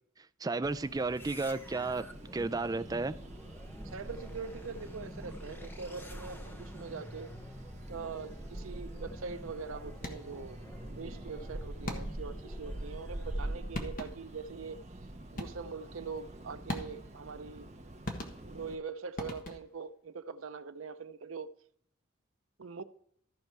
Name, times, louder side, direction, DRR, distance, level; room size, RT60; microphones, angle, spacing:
voice 1, 0.4-2.1 2.3-3.1, right 3 dB, 20° right, 0.4 m, -32 dB
sound 1, 0.6-18.8, right 1 dB, 35° right, 1.0 m, -45 dB
sound 2, 1.1-13.8, equal, 10° left, 0.9 m, -49 dB
voice 2, 3.8-7.3 7.9-10.6 10.9-14.8 15.3-17.7 18.4-21.5 22.6-22.8, right 5 dB, 90° right, 0.6 m, -43 dB
sound 3, 10.0-10.5 11.9-12.4 13.4-13.5 13.7-14.4 15.4-15.8 16.7-17.2 18.0-18.7 19.2-19.9, left 1 dB, 45° left, 1.4 m, -40 dB
14.0 x 5.4 x 4.6 m
head